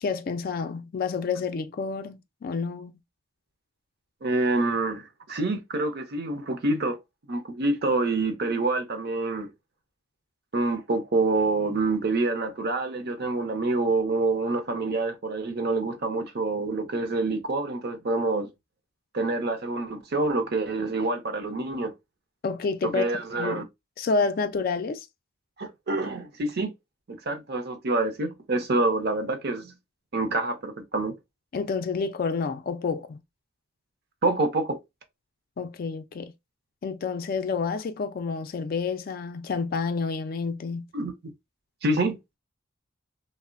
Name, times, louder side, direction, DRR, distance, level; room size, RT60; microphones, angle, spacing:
voice 1, 0.0-2.9 22.4-23.6 24.0-25.1 31.5-33.2 35.6-36.3 36.8-40.9, left 4 dB, 45° left, 0.3 m, -29 dB
voice 2, 4.2-7.0 7.3-9.5 10.5-18.5 19.1-21.9 22.8-23.6 25.6-26.7 27.3-29.7 30.1-31.1 34.2-34.8 40.9-41.3 41.8-42.2, right 2 dB, 55° right, 0.6 m, -27 dB
3.1 x 2.0 x 2.4 m
head